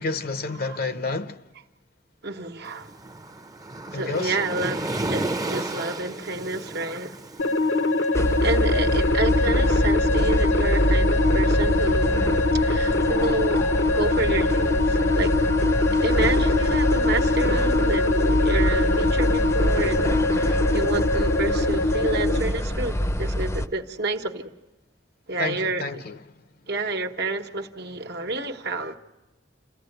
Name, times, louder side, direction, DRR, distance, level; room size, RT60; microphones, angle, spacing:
voice 1, 0.0-1.4 3.9-4.4 25.4-26.2, left 3 dB, 55° left, 0.8 m, -29 dB
voice 2, 2.2-2.9 3.9-7.2 8.4-12.2 12.5-15.3 15.9-24.5 25.3-26.0 26.7-29.0, right 2 dB, 65° right, 1.3 m, -29 dB
Waves surf, 2.6-9.8, right 2 dB, 20° right, 0.8 m, -33 dB
sound 1, 7.4-22.4, left 2 dB, 85° left, 1.2 m, -23 dB
sound 2, 8.1-23.7, equal, 15° left, 0.7 m, -25 dB
28.5 x 15.0 x 7.9 m
head